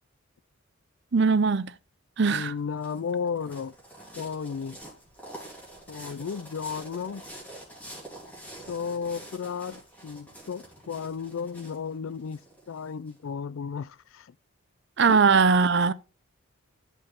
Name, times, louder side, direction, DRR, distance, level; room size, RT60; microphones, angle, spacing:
voice 1, 1.1-1.7 2.2-2.5 15.0-15.9, right 5 dB, 55° right, 0.5 m, -20 dB
voice 2, 2.3-3.7 4.2-4.8 5.9-7.2 8.7-12.4 12.7-14.3 15.1-15.2, left 6 dB, 70° left, 0.4 m, -34 dB
sound 1, 2.6-13.1, right 1 dB, 5° left, 3.3 m, -46 dB
13.0 x 5.4 x 3.6 m
head